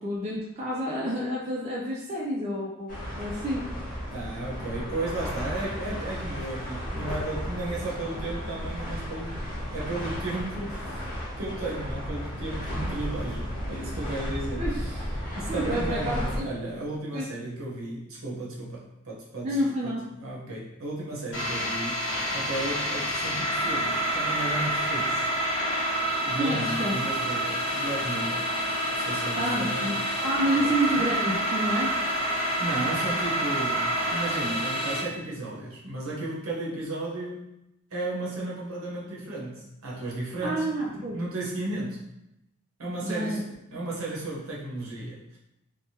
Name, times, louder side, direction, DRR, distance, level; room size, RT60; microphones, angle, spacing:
voice 1, 0.0-3.7 14.6-14.8 15.5-16.5 17.1-17.3 19.4-20.0 26.4-26.9 29.3-31.9 40.4-41.2 43.0-43.4, right 1 dB, 30° right, -4 dB, 0.3 m, -29 dB
sound 1, 2.9-16.4, equal, 35° left, 0.8 m, -34 dB
voice 2, 4.1-9.4 9.7-11.1 11.4-15.1 15.3-19.9 20.2-25.3 26.2-30.0 30.6-30.8 32.6-37.5 37.9-42.0 42.8-43.4 43.7-45.4, right 2 dB, 70° right, -4 dB, 0.8 m, -34 dB
sound 2, 21.3-35.0, right 1 dB, 60° left, 1.0 m, -28 dB
3.3 x 2.1 x 2.8 m, 0.87 s
head